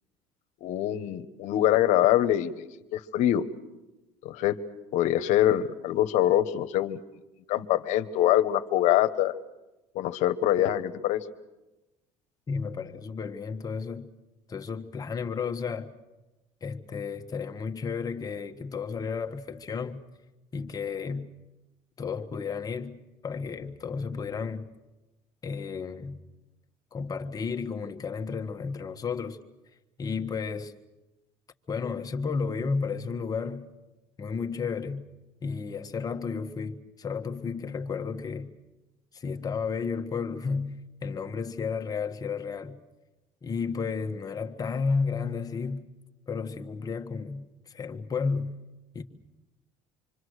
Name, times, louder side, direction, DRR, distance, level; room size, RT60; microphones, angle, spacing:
voice 1, 0.6-2.5 2.9-3.4 4.2-4.6 4.9-7.0 7.5-9.3 9.9-11.2, left 12 dB, 70° left, 1.3 m, -24 dB
voice 2, 12.5-14.1 14.5-15.9 16.6-20.0 20.5-21.3 22.0-24.7 25.4-26.2 26.9-29.4 30.0-30.7 31.7-33.7 34.2-35.1 35.4-38.5 39.1-42.8 43.4-45.9 46.3-48.6 48.9-49.0, left 5 dB, 30° left, 1.5 m, -32 dB
27.0 x 24.5 x 6.5 m
cardioid pair, 120°, 13 cm